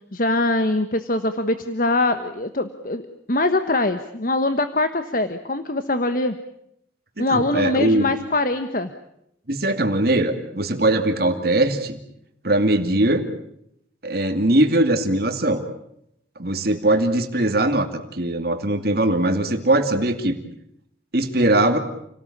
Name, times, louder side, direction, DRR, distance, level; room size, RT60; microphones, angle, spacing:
voice 1, 0.1-3.0 3.3-6.3 7.2-8.9, left 2 dB, 45° left, 9 dB, 1.3 m, -22 dB
voice 2, 7.2-8.1 9.5-12.0 12.4-13.2 14.0-15.6 16.4-20.4 21.1-21.8, right 1 dB, 55° right, 5 dB, 2.5 m, -20 dB
29.5 x 18.5 x 8.7 m, 0.77 s
head